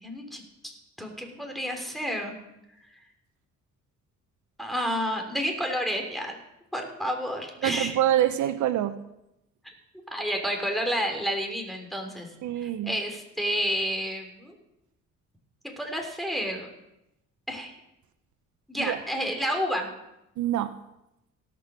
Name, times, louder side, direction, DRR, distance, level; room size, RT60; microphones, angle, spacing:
voice 1, 0.0-2.4 4.6-6.4 6.7-7.9 10.1-12.3 12.6-14.5 15.6-16.7 17.5-17.7 18.7-19.9, equal, ahead, 3 dB, 3.0 m, -30 dB
voice 2, 7.6-9.0 12.4-13.0 18.9-19.0 20.4-20.7, right 12 dB, 75° right, 11 dB, 0.8 m, -25 dB
18.0 x 6.1 x 6.1 m, 0.88 s
cardioid pair, 90°, 30 cm